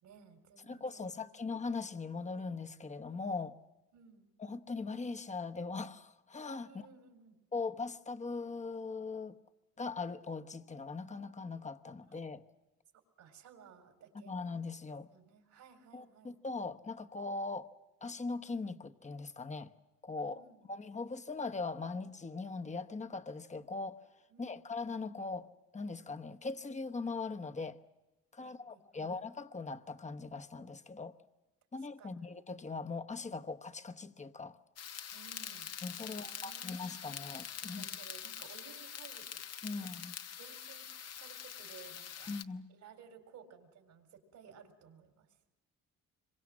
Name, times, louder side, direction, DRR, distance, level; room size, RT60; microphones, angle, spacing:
voice 1, 0.0-1.3 3.9-4.3 6.6-7.4 13.2-14.3 15.1-16.4 20.2-20.8 24.3-24.5 28.4-29.1 31.7-32.3 35.1-35.7 36.0-36.8 37.6-39.4 39.7-39.9 40.4-40.9 41.2-42.3 42.7-45.3, right 7 dB, 75° right, 3.9 m, -57 dB
voice 2, 0.7-3.6 4.4-6.7 7.5-9.4 9.8-12.4 14.3-15.1 15.9-17.7 18.0-19.7 20.0-24.0 24.4-25.5 25.7-27.8 28.3-31.1 31.7-34.6 35.8-37.8 39.6-40.1 42.3-42.7, left 4 dB, 25° left, 1.1 m, -40 dB
sound 1, 34.8-42.4, left 8 dB, 55° left, 1.0 m, -45 dB
26.0 x 23.0 x 7.5 m
cardioid pair, 90°, 30 cm